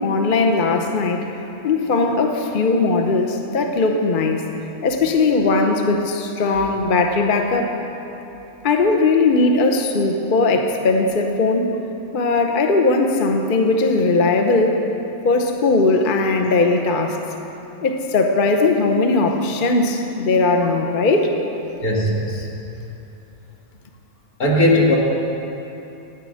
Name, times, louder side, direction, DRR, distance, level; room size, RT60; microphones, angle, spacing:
voice 1, 0.0-1.2 1.6-4.4 4.8-7.7 8.6-11.7 12.1-14.8 15.2-17.2 17.8-21.3, left 3 dB, 40° left, 4 dB, 0.9 m, -19 dB
voice 2, 21.8-22.5 24.4-25.0, left 1 dB, 80° left, -3 dB, 2.3 m, -17 dB
13.5 x 9.3 x 6.4 m, 2.9 s
omnidirectional pair, 1.5 m